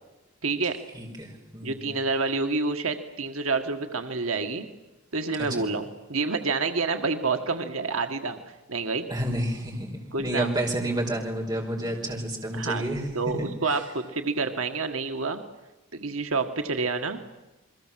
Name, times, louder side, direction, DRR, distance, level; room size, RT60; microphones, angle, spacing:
voice 1, 0.4-0.8 1.6-4.7 5.1-8.4 8.7-9.1 10.1-10.5 12.5-12.9 13.1-15.4 15.9-17.2, right 4 dB, 75° right, 6 dB, 1.7 m, -28 dB
voice 2, 0.9-1.9 5.6-5.7 9.1-9.9 10.2-13.0 13.7-13.8, right 1 dB, 20° right, 0 dB, 5.1 m, -30 dB
29.5 x 22.0 x 7.6 m, 1.0 s
head